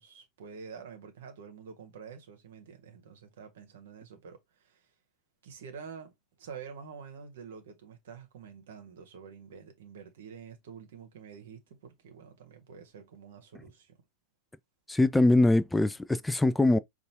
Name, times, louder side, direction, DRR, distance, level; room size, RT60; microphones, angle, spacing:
voice 1, 0.0-4.9 5.4-14.0, right 6 dB, 60° right, 1.1 m, -48 dB
voice 2, 14.9-16.8, left 2 dB, 5° left, 0.4 m, -23 dB
5.2 x 2.5 x 2.9 m
figure-of-eight pair, 90°, 0 cm